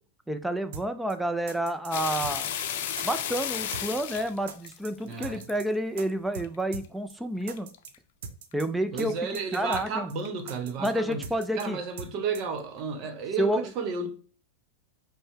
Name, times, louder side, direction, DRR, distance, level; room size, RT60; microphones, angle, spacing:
voice 1, 0.3-2.5 3.0-7.7 8.5-9.1 9.5-10.1 10.8-11.8 13.4-13.7, right 1 dB, 5° right, 0.5 m, -29 dB
sound 1, 0.7-0.8 1.1-1.2 1.5-1.9 2.2-2.7 3.0-3.1 3.3-3.8 4.1-4.2 4.5-4.9 5.2-5.7 6.0-6.1 6.3-6.5 6.7-6.8 7.1-7.2 7.5-7.9 8.2-8.7 9.0-9.1 9.3-9.8 10.1-10.2 10.5-10.9 11.2-11.7 12.0-12.1 12.3-12.4, right 5 dB, 70° right, 0.7 m, -40 dB
sound 2, 1.9-5.6 6.1-6.5 6.8-6.9 7.4-8.0 8.5-8.6 9.1-9.2 9.4-9.7 10.2-10.4 11.1-11.2, left 9 dB, 65° left, 0.5 m, -33 dB
voice 2, 5.0-5.5 8.9-11.3 11.5-14.1, right 5 dB, 45° right, 1.0 m, -32 dB
5.2 x 2.2 x 3.7 m
hypercardioid pair, 105°, 0 cm